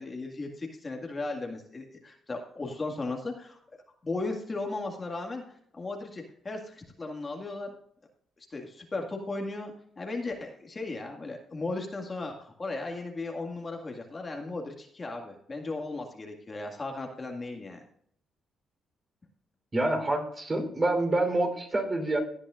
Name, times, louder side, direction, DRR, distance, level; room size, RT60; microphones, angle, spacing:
voice 1, 0.0-3.6 4.0-5.4 5.7-7.8 8.5-17.9, left 3 dB, 30° left, 2 dB, 2.0 m, -36 dB
voice 2, 19.7-22.2, right 2 dB, 30° right, 4 dB, 3.6 m, -27 dB
17.5 x 9.7 x 2.5 m, 0.64 s
cardioid pair, 90°, 0 cm